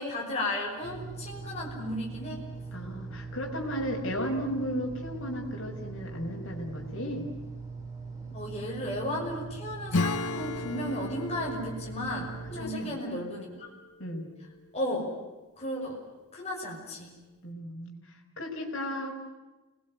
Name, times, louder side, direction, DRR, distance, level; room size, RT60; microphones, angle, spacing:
voice 1, 0.0-2.4 8.3-13.7 14.7-15.1 15.6-16.0 16.3-17.1, left 1 dB, 30° left, -2 dB, 5.9 m, -34 dB
sound 1, 0.8-12.7, right 4 dB, 15° right, 5.9 m, -41 dB
voice 2, 2.7-7.3 12.5-13.2 14.0-14.2 17.4-19.2, equal, 60° left, 2 dB, 5.3 m, -35 dB
Acoustic guitar / Strum, 9.9-14.2, left 3 dB, 75° left, 0.9 m, -35 dB
28.5 x 21.0 x 9.3 m, 1.1 s
head